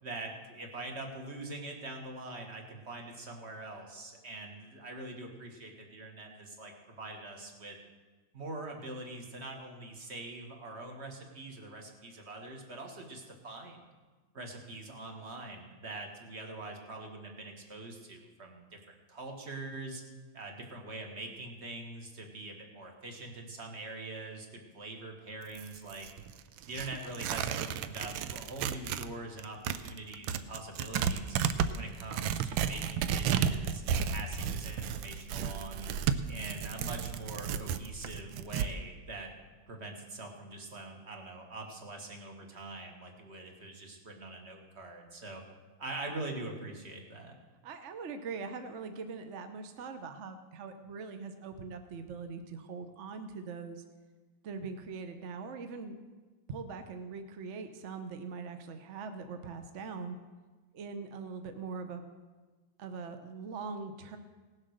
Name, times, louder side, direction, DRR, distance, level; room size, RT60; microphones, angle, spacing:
voice 1, 0.0-7.8 8.3-13.9 14.3-18.8 19.1-20.0 20.3-26.1 26.7-31.4 31.7-35.9 36.3-39.3 39.7-45.4 45.8-47.4, right 2 dB, 35° right, 3 dB, 1.7 m, -43 dB
Tearing, 25.4-29.1 29.4-38.7, right 8 dB, 80° right, 1.4 m, -33 dB
voice 2, 47.6-53.8 54.4-56.0 56.5-60.2 60.7-62.1 62.8-64.2, right 4 dB, 60° right, 8 dB, 0.8 m, -42 dB
18.0 x 7.5 x 6.4 m, 1.3 s
omnidirectional pair, 2.2 m